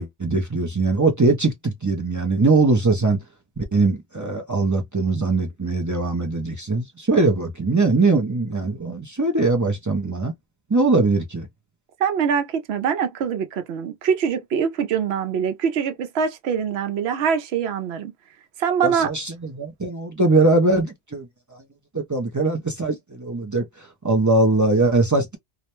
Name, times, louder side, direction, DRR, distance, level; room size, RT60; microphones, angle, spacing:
voice 1, 0.0-3.2 3.6-10.3 10.7-11.5 18.8-21.6 21.9-25.4, right 3 dB, 30° right, 0.3 m, -21 dB
voice 2, 12.0-18.1 18.6-19.1, right 7 dB, 75° right, 0.8 m, -23 dB
2.4 x 2.1 x 2.9 m
omnidirectional pair, 1.1 m